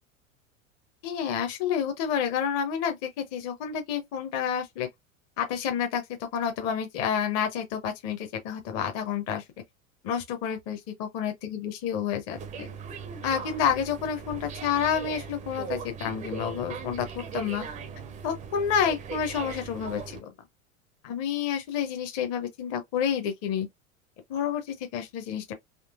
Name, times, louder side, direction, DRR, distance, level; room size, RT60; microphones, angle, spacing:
voice 1, 1.0-4.9 5.4-6.0 6.3-9.4 10.0-12.7 13.2-17.6 18.2-20.3 21.0-23.7 24.3-25.5, left 8 dB, 35° left, 0.7 m, -29 dB
sound 1, 12.3-20.2, right 6 dB, 20° right, 0.5 m, -39 dB
3.7 x 2.6 x 2.4 m
figure-of-eight pair, 85°, 41 cm